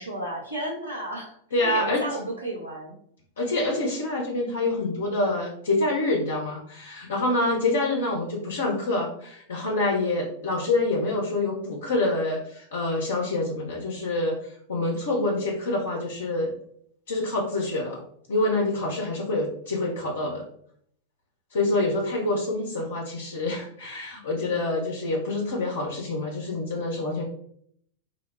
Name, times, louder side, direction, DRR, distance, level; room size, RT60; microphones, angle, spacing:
voice 1, 0.0-1.4 1.6-2.9, right 1 dB, 90° right, -5 dB, 1.1 m, -33 dB
voice 2, 1.5-2.0 3.4-14.4 14.7-16.5 17.1-18.0 18.3-20.4 21.5-27.2, left 2 dB, 65° left, -3 dB, 0.7 m, -26 dB
2.8 x 2.0 x 4.0 m, 0.65 s
figure-of-eight pair, 90°, 0 cm